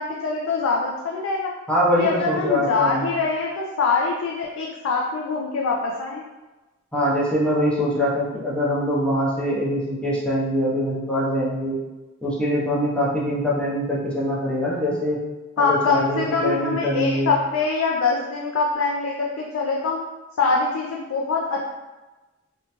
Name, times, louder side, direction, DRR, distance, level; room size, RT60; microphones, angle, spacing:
voice 1, 0.0-1.5 2.0-6.2 15.6-20.0 20.4-21.6, left 4 dB, 85° left, -2 dB, 0.4 m, -24 dB
voice 2, 1.7-3.1 6.9-11.8 12.2-15.2 15.6-17.3, equal, 5° left, -6 dB, 0.5 m, -23 dB
3.0 x 2.2 x 2.8 m, 1.1 s
head